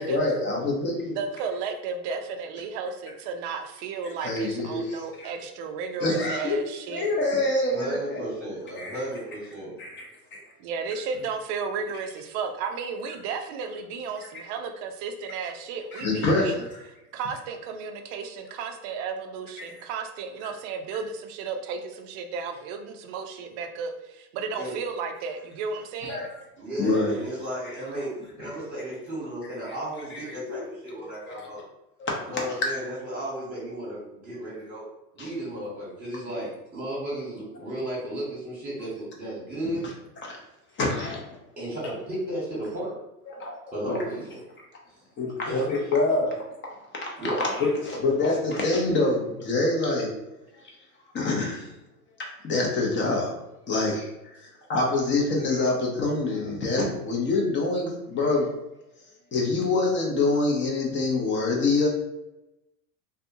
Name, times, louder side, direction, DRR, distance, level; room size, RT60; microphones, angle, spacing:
voice 1, 0.0-1.2 4.2-5.3 6.0-6.6 6.9-8.3 8.8-9.0 9.8-10.1 15.9-16.5 19.6-19.7 26.1-26.3 26.8-27.2 28.4-28.5 29.7-29.8 30.1-30.6 31.2-31.5 32.0-32.1 35.2-35.3 40.2-40.4 40.8-41.4 43.3-43.5 43.9-44.0 45.2-46.4 46.7-50.1 51.1-51.7 52.4-54.1 54.4-58.5 59.3-61.9, left 2 dB, 25° left, -1 dB, 0.6 m, -26 dB
voice 2, 1.1-7.1 10.6-16.6 17.1-26.2, right 5 dB, 40° right, 5 dB, 0.4 m, -33 dB
voice 3, 7.7-9.7 24.6-24.7 26.6-28.1 28.4-31.7 32.2-34.8 35.1-39.9 41.6-42.9 43.7-44.4 44.9-45.0 45.4-45.6 47.2-47.5 54.4-54.5, right 1 dB, 15° right, -6 dB, 1.1 m, -34 dB
2.5 x 2.3 x 2.6 m, 0.94 s
hypercardioid pair, 95°, 47 cm